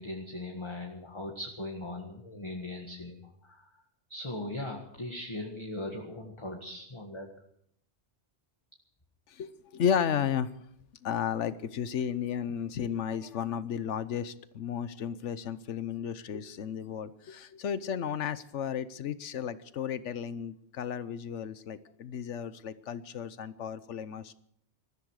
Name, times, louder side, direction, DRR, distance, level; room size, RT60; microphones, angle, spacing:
voice 1, 0.0-3.7 4.1-7.3, left 1 dB, 25° left, 1 dB, 1.7 m, -39 dB
voice 2, 9.3-10.5 11.0-24.3, left 8 dB, 85° left, 15 dB, 1.2 m, -33 dB
20.0 x 14.5 x 4.8 m, 0.69 s
omnidirectional pair, 1.2 m